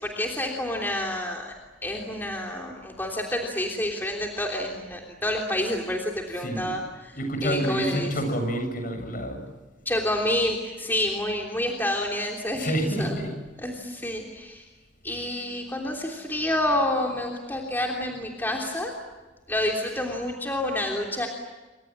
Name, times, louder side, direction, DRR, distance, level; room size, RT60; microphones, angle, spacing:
voice 1, 0.0-1.5 1.8-7.2 7.4-8.1 9.8-13.1 13.6-14.6 15.0-18.9 19.5-21.3, left 1 dB, 10° left, 0 dB, 3.3 m, -28 dB
voice 2, 6.4-6.8 7.1-9.4 12.5-13.3, equal, 50° left, 6 dB, 7.6 m, -28 dB
28.5 x 25.5 x 7.5 m, 1.2 s
head